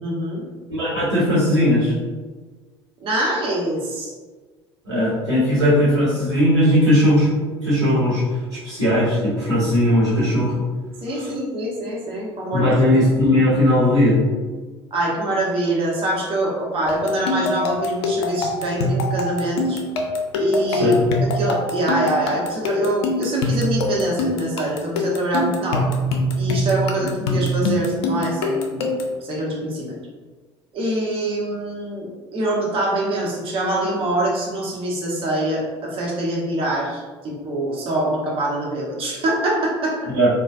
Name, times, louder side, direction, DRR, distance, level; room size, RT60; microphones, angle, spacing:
voice 1, 0.0-0.4 3.0-4.1 11.0-13.0 14.9-19.8 20.4-25.9 26.4-28.9 29.2-29.9 30.7-40.0, right 1 dB, 40° right, -4 dB, 1.0 m, -24 dB
voice 2, 0.8-1.9 4.8-7.3 7.6-8.2 8.5-10.5 12.5-14.2 20.7-21.0 27.3-27.4 40.1-40.3, equal, 85° right, -10 dB, 1.1 m, -18 dB
sound 1, 16.9-29.2, left 2 dB, 65° left, 0.4 m, -24 dB
3.9 x 2.1 x 2.5 m, 1.3 s
figure-of-eight pair, 65°, 14 cm